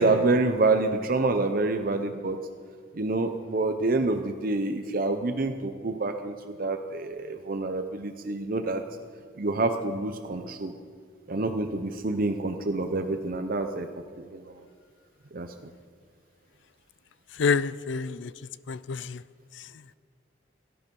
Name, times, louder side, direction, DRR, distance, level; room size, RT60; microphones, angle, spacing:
voice 1, 0.0-2.4 2.9-8.8 9.4-10.7 11.3-14.6 15.3-15.5, right 2 dB, 50° right, 6 dB, 0.7 m, -27 dB
voice 2, 17.4-18.3 18.7-19.2, left 5 dB, 70° left, 17 dB, 0.5 m, -27 dB
17.5 x 12.0 x 5.4 m, 2.1 s
head